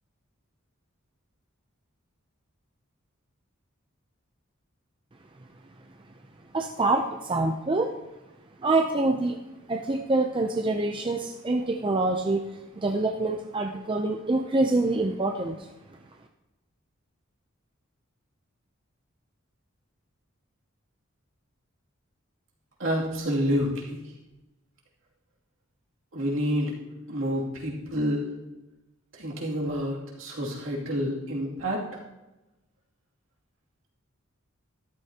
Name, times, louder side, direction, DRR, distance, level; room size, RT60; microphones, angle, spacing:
voice 1, 6.5-7.9 8.6-9.4 9.7-12.4 12.8-15.7, right 2 dB, 25° right, 3 dB, 0.5 m, -25 dB
voice 2, 22.8-24.0 26.1-26.7 27.1-28.2 29.2-31.8, equal, 65° right, -3 dB, 2.6 m, -28 dB
13.0 x 12.0 x 2.9 m, 1.0 s
head